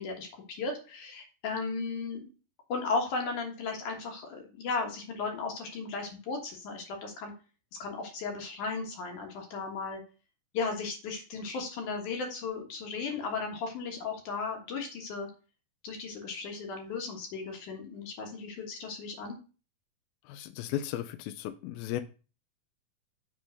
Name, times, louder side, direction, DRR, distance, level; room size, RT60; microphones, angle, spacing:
voice 1, 0.0-2.3 2.7-7.3 7.8-10.0 10.5-15.3 15.8-19.4, left 4 dB, 60° left, 2.7 m, -35 dB
voice 2, 20.3-22.0, left 12 dB, 80° left, 2.4 m, -35 dB
7.5 x 3.7 x 6.3 m
omnidirectional pair, 4.4 m